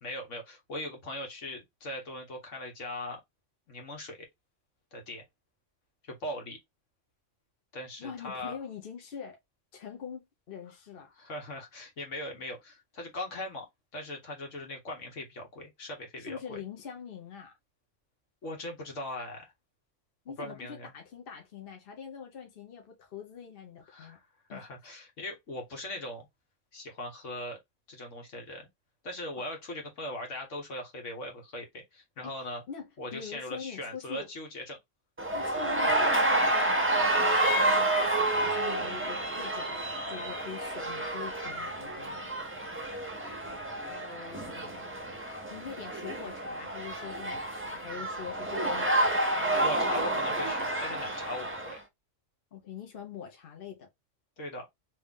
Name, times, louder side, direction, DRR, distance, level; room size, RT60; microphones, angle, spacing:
voice 1, 0.0-3.2 3.7-4.3 4.9-5.2 6.1-6.6 7.7-8.6 11.2-13.7 13.9-16.6 18.4-19.5 20.4-20.9 23.9-24.2 24.5-26.3 26.7-27.6 27.9-28.7 29.0-32.6 33.0-34.8 43.9-45.0 49.4-51.8 54.4-54.7, left 1 dB, 70° left, 1.7 m, -40 dB
voice 2, 8.0-9.4 9.7-11.1 16.2-17.5 20.2-24.2 24.5-24.7 32.2-34.3 35.3-42.3 45.5-49.9 52.5-53.9, left 7 dB, 50° left, 1.0 m, -44 dB
sound 1, 35.2-51.8, right 1 dB, 15° right, 0.6 m, -29 dB
3.3 x 2.7 x 3.6 m
omnidirectional pair, 1.3 m